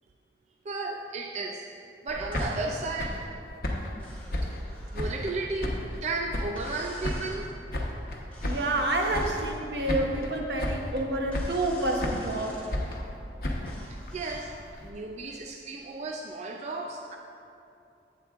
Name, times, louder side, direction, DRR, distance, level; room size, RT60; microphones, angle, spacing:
voice 1, 0.7-1.7 2.0-3.3 4.4-7.5 13.9-14.5 14.8-17.2, right 3 dB, 40° right, 2 dB, 0.4 m, -34 dB
sound 1, 2.1-5.3 5.6-6.7 7.0-8.8 9.1-9.6 9.9-10.3 10.6-11.0 11.3-12.4 12.7-14.9, left 1 dB, 55° left, 0.9 m, -33 dB
sound 2, 2.3-2.6 4.0-5.2 6.6-7.4 8.3-9.6 11.3-12.7 13.7-14.6, left 1 dB, 10° left, 1.7 m, -48 dB
voice 2, 8.4-12.6, right 1 dB, 75° right, 1 dB, 0.9 m, -28 dB
11.5 x 8.4 x 2.4 m, 2.7 s
head